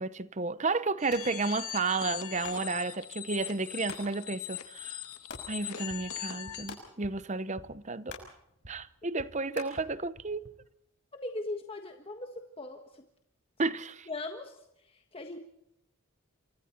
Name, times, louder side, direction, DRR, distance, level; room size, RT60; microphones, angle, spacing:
voice 1, 0.0-5.0 5.5-8.3 8.7-10.5 13.6-14.1, right 3 dB, 30° right, 0.7 m, -32 dB
sound 1, 1.0-6.8, left 11 dB, 80° left, 2.1 m, -40 dB
sound 2, 1.0-10.7, left 4 dB, 50° left, 6.1 m, -52 dB
sound 3, 5.1-9.4 9.7-10.5, equal, 50° right, 4.1 m, -53 dB
voice 2, 11.1-13.0 14.1-15.4, left 2 dB, 25° left, 1.4 m, -40 dB
28.0 x 24.5 x 4.4 m
head